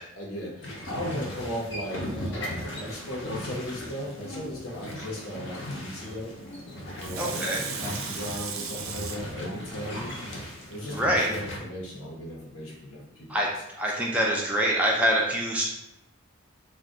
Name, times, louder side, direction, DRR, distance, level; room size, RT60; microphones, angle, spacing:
voice 1, 0.0-6.3 7.0-10.2 10.7-13.4, equal, 85° left, -3 dB, 1.0 m, -37 dB
sound 1, 0.6-11.6, left 1 dB, 55° left, 0.6 m, -37 dB
Water tap faucet / Sink (filling or washing), 7.0-10.8 11.3-11.4, right 6 dB, 80° right, 0.4 m, -38 dB
voice 2, 7.2-7.6 10.9-11.3 13.3-15.6, equal, 5° right, -2 dB, 0.3 m, -25 dB
2.4 x 2.2 x 3.6 m, 0.89 s
head